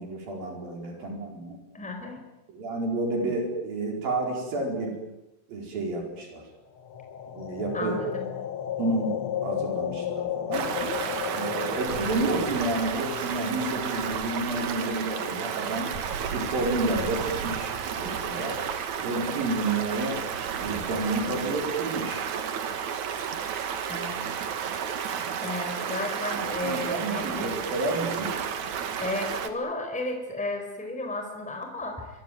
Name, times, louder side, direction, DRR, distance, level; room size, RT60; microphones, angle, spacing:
voice 1, 0.0-1.6 2.5-5.0 5.5-6.5 7.3-8.0 8.8-9.2 9.4-10.7 11.3-15.9 16.3-18.6 19.0-20.2 20.5-22.3 26.6-28.3, right 2 dB, 80° right, 2 dB, 6.3 m, -30 dB
voice 2, 1.7-2.2 7.7-8.3 23.9-24.2 25.4-27.5 29.0-32.1, left 2 dB, ahead, 4 dB, 4.4 m, -33 dB
sound 1, 6.8-14.8, left 10 dB, 50° left, 1.7 m, -34 dB
Stream, 10.5-29.5, right 7 dB, 60° right, 2.9 m, -32 dB
25.0 x 23.5 x 9.4 m, 0.98 s
omnidirectional pair, 4.0 m